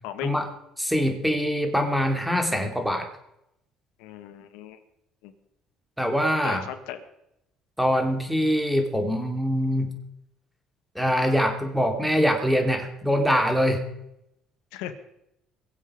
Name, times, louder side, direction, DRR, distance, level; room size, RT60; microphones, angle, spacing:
voice 1, 0.0-0.3 4.0-4.8 5.2-5.3 6.4-7.0 14.7-14.9, left 10 dB, 90° left, 8 dB, 1.5 m, -36 dB
voice 2, 0.8-3.1 6.0-6.6 7.8-9.9 10.9-13.9, equal, ahead, 4 dB, 2.7 m, -23 dB
22.5 x 7.9 x 5.0 m, 0.82 s
cardioid pair, 100°, 0 cm